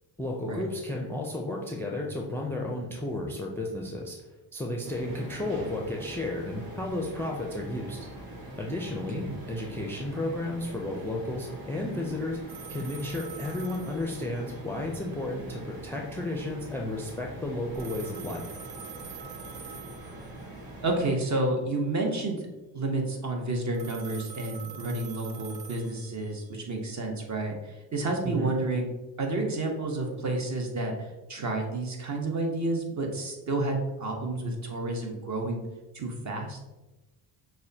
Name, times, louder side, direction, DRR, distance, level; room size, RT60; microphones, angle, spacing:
voice 1, 0.2-4.2 4.5-8.1 8.6-18.4 28.2-28.6, left 1 dB, 5° left, 0 dB, 0.4 m, -33 dB
sound 1, 4.8-21.1, right 1 dB, 80° right, 1.2 m, -43 dB
sound 2, 12.5-14.8 17.7-20.6 23.7-26.7, right 8 dB, 60° right, 0.6 m, -45 dB
voice 2, 20.8-22.5 22.7-28.9 29.2-35.6 35.9-36.6, right 2 dB, 40° right, 1 dB, 1.0 m, -30 dB
6.1 x 2.2 x 2.7 m, 1.1 s
cardioid pair, 85°, 43 cm